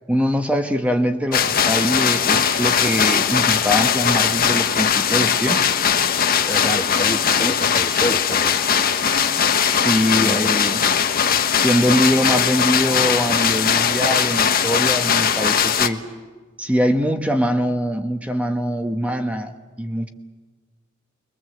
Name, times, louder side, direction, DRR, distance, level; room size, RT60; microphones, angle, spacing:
voice 1, 0.1-5.6 9.7-10.8 11.6-16.0 16.6-20.1, equal, 5° right, 5 dB, 1.2 m, -22 dB
sound 1, 1.3-15.9, left 7 dB, 45° left, 1.2 m, -19 dB
voice 2, 6.5-8.6 10.2-10.5, left 1 dB, 15° left, -1 dB, 1.9 m, -28 dB
29.0 x 22.5 x 7.9 m, 1.3 s
head